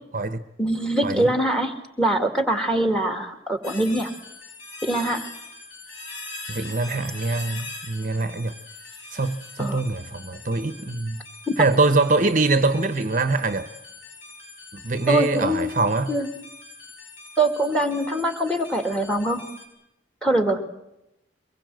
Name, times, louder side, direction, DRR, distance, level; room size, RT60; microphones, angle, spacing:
voice 1, 0.6-4.1 4.8-5.3 9.6-9.8 11.5-11.6 15.1-15.7 16.1-16.3 17.4-19.4 20.2-20.7, right 1 dB, 5° left, 2.3 m, -23 dB
sound 1, 3.6-19.7, left 3 dB, 85° left, 5.5 m, -42 dB
voice 2, 6.5-8.5 9.1-11.2 11.6-13.7 14.7-16.1, right 3 dB, 45° right, 1.0 m, -23 dB
24.0 x 20.5 x 7.8 m
head